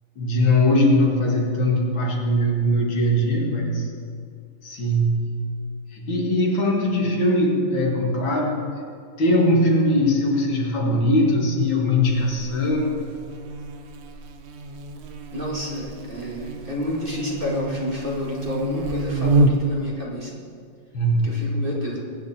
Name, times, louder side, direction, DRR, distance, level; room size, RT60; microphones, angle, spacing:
voice 1, 0.2-3.9 4.6-5.5 5.9-8.7 9.2-13.0 20.9-21.6, left 1 dB, 80° left, -1 dB, 2.8 m, -21 dB
Buzz, 12.0-19.8, right 2 dB, 65° right, 0.6 m, -28 dB
voice 2, 15.3-20.3 21.2-22.0, left 1 dB, 25° right, -4 dB, 2.3 m, -29 dB
21.5 x 9.4 x 4.4 m, 2.3 s
omnidirectional pair, 2.1 m